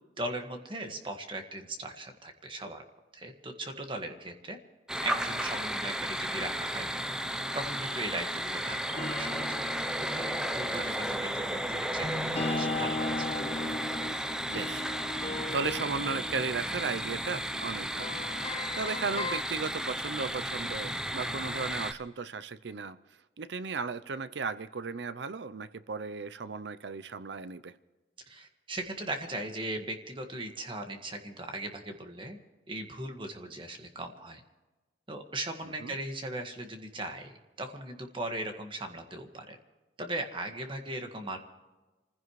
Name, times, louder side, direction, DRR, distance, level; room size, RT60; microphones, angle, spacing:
voice 1, 0.2-2.8 3.1-4.6 5.0-6.9 7.5-9.7 10.0-13.0 13.4-13.5 28.3-32.4 32.7-34.4 35.1-37.3 37.6-39.6 40.0-41.4, right 1 dB, 30° right, 4 dB, 1.7 m, -38 dB
sound 1, 4.9-21.9, equal, 5° right, 0.6 m, -34 dB
sound 2, 9.0-19.4, left 3 dB, 35° left, 0.8 m, -38 dB
voice 2, 14.5-18.2 18.8-23.0 23.4-27.7 35.6-36.0, right 5 dB, 70° right, 15 dB, 0.6 m, -36 dB
28.5 x 15.5 x 3.2 m, 1.2 s
head